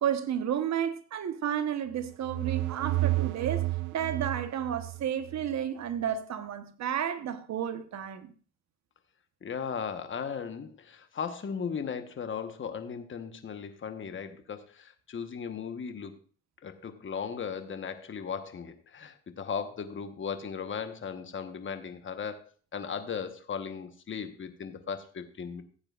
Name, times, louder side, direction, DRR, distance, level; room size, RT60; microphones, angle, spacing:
voice 1, 0.0-3.7 3.9-8.3, right 9 dB, 65° right, 1.2 m, -32 dB
sound 1, 1.9-5.6, right 19 dB, 90° right, 0.5 m, -31 dB
voice 2, 9.4-16.1 16.6-25.6, left 6 dB, 40° left, 1.2 m, -37 dB
15.5 x 8.7 x 2.5 m
cardioid pair, 90°, 30 cm